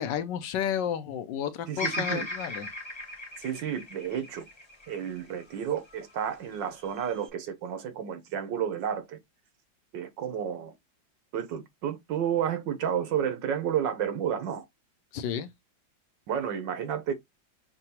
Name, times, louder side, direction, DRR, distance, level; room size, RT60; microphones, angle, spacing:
voice 1, 0.0-2.7 15.1-15.5, left 9 dB, 75° left, 1.2 m, -32 dB
voice 2, 1.7-2.3 3.4-4.5 4.9-9.2 9.9-10.7 11.3-14.6 16.3-17.1, right 9 dB, 75° right, 1.6 m, -31 dB
Bird vocalization bird call bird song, 1.8-6.0 6.5-7.3, left 1 dB, 25° left, 0.7 m, -37 dB
6.6 x 2.3 x 2.8 m
omnidirectional pair, 2.0 m